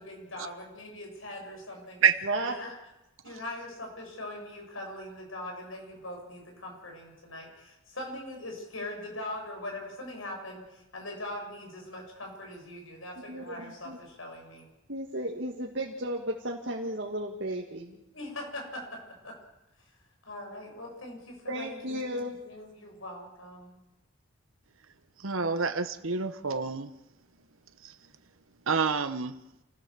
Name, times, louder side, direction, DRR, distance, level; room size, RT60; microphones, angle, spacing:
voice 1, 0.0-2.0 2.4-2.8 3.2-14.7 18.1-19.0 19.2-19.3 20.3-23.8, left 1 dB, 75° left, 2 dB, 7.4 m, -41 dB
voice 2, 2.2-2.5 3.3-3.4 13.3-14.0 14.9-18.0 21.5-22.4, right 1 dB, 60° right, 0 dB, 2.2 m, -34 dB
voice 3, 25.2-26.9 28.7-29.3, right 5 dB, 80° right, 8 dB, 1.1 m, -27 dB
29.0 x 17.0 x 7.4 m, 0.94 s
head